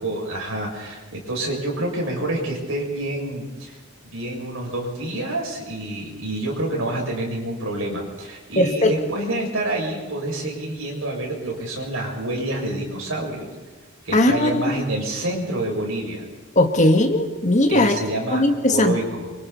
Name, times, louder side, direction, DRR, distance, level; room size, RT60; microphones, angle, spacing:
voice 1, 0.0-3.8 4.1-13.5 14.0-16.2 17.7-19.3, right 1 dB, 65° right, -1 dB, 6.7 m, -28 dB
voice 2, 8.6-8.9 14.1-14.5 16.5-17.9 18.3-18.9, left 1 dB, 35° left, 5 dB, 1.6 m, -18 dB
28.0 x 25.0 x 4.2 m, 1.3 s
head